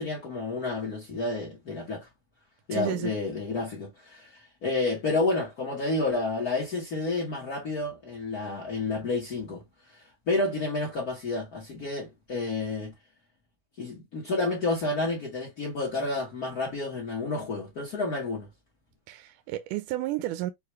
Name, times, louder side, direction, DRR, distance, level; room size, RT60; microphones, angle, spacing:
voice 1, 0.0-2.1 2.7-9.6 9.9-12.9 13.8-18.5, left 3 dB, 85° left, 0.8 m, -30 dB
voice 2, 2.7-3.1 19.1-20.5, right 15 dB, 80° right, 2.0 m, -31 dB
6.6 x 2.3 x 3.0 m
omnidirectional pair, 3.7 m